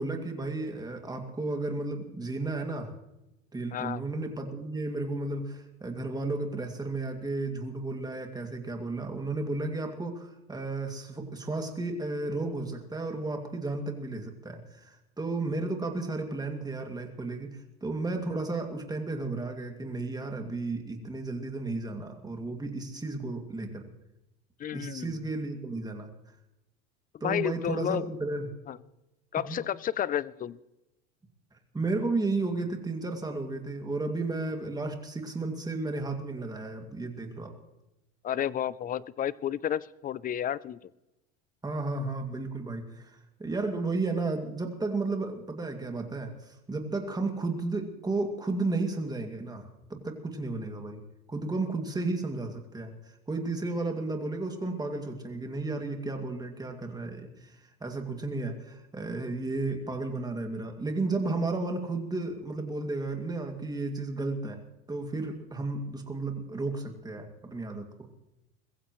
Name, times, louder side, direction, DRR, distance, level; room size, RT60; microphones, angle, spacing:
voice 1, 0.0-2.9 3.5-23.9 24.7-26.1 27.2-28.5 29.4-29.6 31.7-37.5 41.6-51.0 51.3-64.6 64.9-68.1, right 3 dB, 10° right, 4 dB, 2.3 m, -33 dB
voice 2, 3.7-4.0 24.6-25.2 27.2-28.0 28.7-28.8 29.3-30.6 38.2-40.9, left 10 dB, 25° left, 20 dB, 0.5 m, -31 dB
22.0 x 15.0 x 3.1 m, 0.95 s
supercardioid pair, 110°, 32 cm